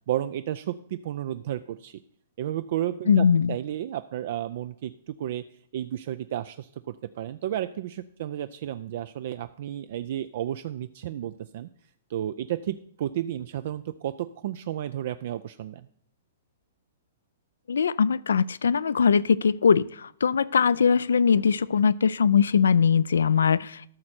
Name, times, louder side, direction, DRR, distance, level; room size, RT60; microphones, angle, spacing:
voice 1, 0.1-2.0 2.4-5.4 5.7-11.7 12.1-15.9, right 12 dB, 60° right, 13 dB, 0.3 m, -32 dB
voice 2, 3.1-3.6 17.7-24.0, left 6 dB, 85° left, 19 dB, 0.3 m, -21 dB
12.5 x 6.4 x 4.4 m, 0.62 s
hypercardioid pair, 135°, 0 cm